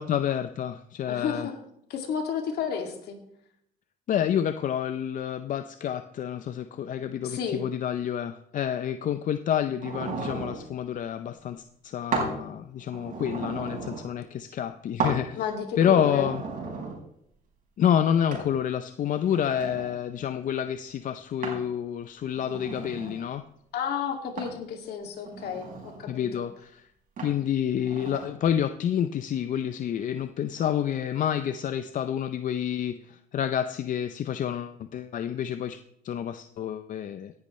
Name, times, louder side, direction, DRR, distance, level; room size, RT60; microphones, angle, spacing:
voice 1, 0.0-1.5 4.1-15.4 15.8-16.4 17.8-23.4 26.1-26.8 27.2-35.8 36.0-37.3, left 9 dB, 50° left, 10 dB, 0.6 m, -28 dB
voice 2, 1.1-1.6 1.9-3.2 7.2-7.7 15.4-16.2 23.7-26.5, left 7 dB, 70° left, 3 dB, 2.4 m, -32 dB
sound 1, 9.8-10.6 12.1-12.4 12.8-14.1 15.0-15.2 15.7-17.0 18.3-18.5 19.1-19.9 21.4-21.7 22.3-23.3 24.4-24.6 25.2-26.0 27.2-27.4 27.8-28.3, right 4 dB, 50° right, 4.6 m, -34 dB
17.0 x 10.5 x 3.2 m, 0.75 s
cardioid pair, 110°, 17 cm